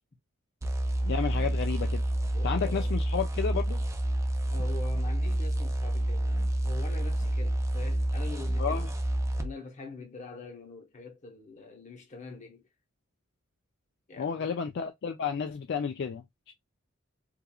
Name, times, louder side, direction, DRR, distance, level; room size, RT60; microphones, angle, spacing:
sound 1, 0.6-9.5, right 1 dB, 15° right, 0.4 m, -29 dB
voice 1, 1.1-2.0 2.4-3.8 8.6-8.9 14.2-16.5, left 6 dB, 60° left, 0.4 m, -32 dB
voice 2, 2.3-3.0 4.5-8.9 9.3-12.7 14.1-14.6, left 3 dB, 40° left, 0.8 m, -44 dB
3.0 x 2.4 x 2.2 m
head